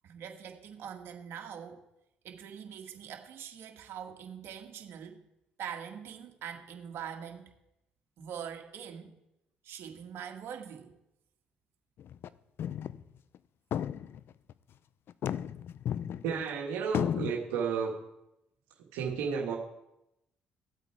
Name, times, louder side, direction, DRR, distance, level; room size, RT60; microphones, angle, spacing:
voice 1, 0.0-1.8 2.2-5.2 5.6-7.5 8.2-9.1 9.6-11.0, right 8 dB, 65° right, 2 dB, 1.9 m, -43 dB
sound 1, 12.0-12.3 12.6-13.0 13.3-13.4 13.7-14.5 15.1-16.5 16.9-17.3, left 9 dB, 60° left, 0.5 m, -33 dB
voice 2, 16.2-18.0 18.9-19.6, right 6 dB, 80° right, -2 dB, 1.7 m, -32 dB
14.5 x 8.2 x 4.6 m, 0.88 s
hypercardioid pair, 55°, 4 cm